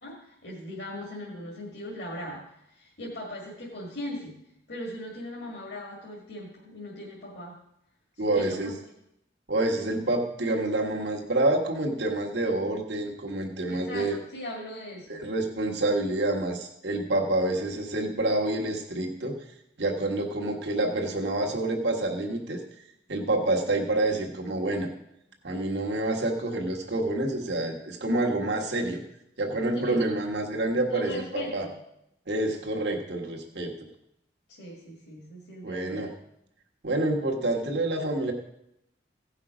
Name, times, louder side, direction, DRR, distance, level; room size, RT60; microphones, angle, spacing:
voice 1, 0.0-4.4 4.7-7.6 8.1-8.8 13.7-15.2 29.8-30.0 30.9-31.8 34.5-36.1, left 1 dB, 70° left, -4 dB, 2.1 m, -39 dB
voice 2, 8.2-8.7 9.5-14.2 15.1-19.4 19.8-22.6 23.1-24.9 25.4-29.0 29.4-31.7 32.3-33.9 35.6-36.1 36.8-38.3, right 2 dB, 70° right, 0 dB, 1.5 m, -27 dB
16.5 x 5.8 x 5.0 m, 0.80 s
head